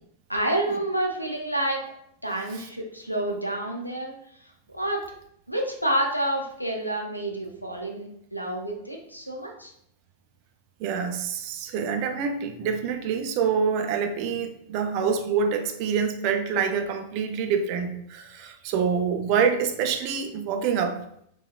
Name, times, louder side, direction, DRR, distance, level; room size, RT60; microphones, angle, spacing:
voice 1, 0.3-1.8 2.2-4.1 4.4-5.0 5.5-9.7, right 1 dB, 90° left, 2 dB, 0.5 m, -29 dB
voice 2, 10.8-21.0, right 6 dB, 45° right, 6 dB, 0.4 m, -26 dB
3.6 x 2.2 x 2.2 m, 0.72 s
figure-of-eight pair, 90°, 0 cm